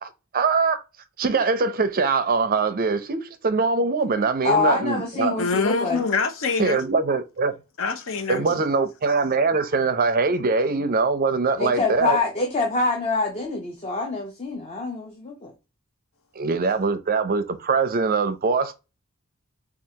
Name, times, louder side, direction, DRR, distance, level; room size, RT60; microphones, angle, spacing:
voice 1, 0.0-0.8 1.2-5.3 6.6-7.6 8.3-12.2 16.4-18.7, right 4 dB, 40° right, 0.5 m, -22 dB
voice 2, 4.4-6.0 8.3-8.6 11.6-15.5, left 3 dB, 30° left, 0.6 m, -25 dB
voice 3, 5.4-6.8 7.8-8.5, left 4 dB, 60° left, 0.8 m, -25 dB
4.6 x 2.4 x 2.7 m
head